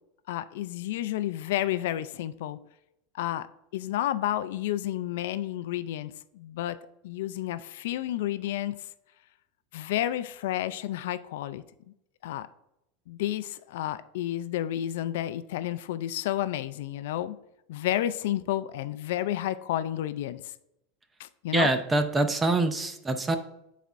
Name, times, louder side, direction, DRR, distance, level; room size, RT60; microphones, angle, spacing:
voice 1, 0.3-2.6 3.1-3.5 3.7-6.8 7.0-8.8 9.7-11.6 12.2-12.5 13.1-17.4 17.7-20.5 21.2-21.7, left 13 dB, 65° left, 13 dB, 0.3 m, -31 dB
voice 2, 21.5-23.4, right 2 dB, 10° right, 9 dB, 0.4 m, -25 dB
10.0 x 4.1 x 2.5 m, 0.84 s
supercardioid pair, 180°, 0 cm